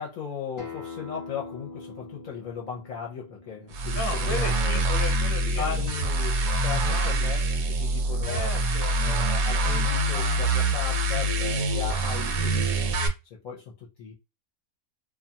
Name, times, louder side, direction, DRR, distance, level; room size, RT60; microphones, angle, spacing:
voice 1, 0.0-4.8 5.6-8.5 9.0-12.9 13.3-14.1, left 7 dB, 65° left, 1.0 m, -37 dB
Acoustic guitar, 0.6-5.8, left 4 dB, 25° left, 0.4 m, -44 dB
sound 1, 3.7-13.1, right 1 dB, 70° right, 1.0 m, -25 dB
voice 2, 3.9-5.7 6.9-7.1 8.2-9.0, left 2 dB, 45° left, 0.9 m, -35 dB
2.6 x 2.3 x 2.7 m
omnidirectional pair, 1.6 m